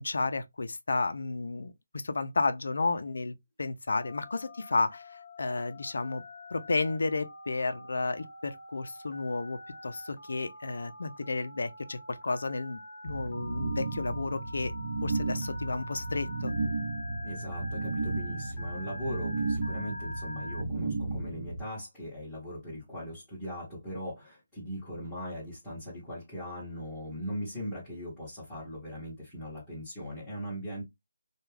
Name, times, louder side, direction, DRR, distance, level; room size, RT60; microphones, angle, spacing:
voice 1, 0.0-6.2 6.5-14.7 15.0-16.5, left 3 dB, 60° left, 0.5 m, -32 dB
Telephone, 3.9-20.6, left 1 dB, 40° left, 1.0 m, -45 dB
sound 1, 13.0-21.6, right 3 dB, 40° right, 0.8 m, -34 dB
voice 2, 17.2-30.8, equal, 5° left, 1.0 m, -39 dB
2.3 x 2.3 x 3.1 m
hypercardioid pair, 175°, 0 cm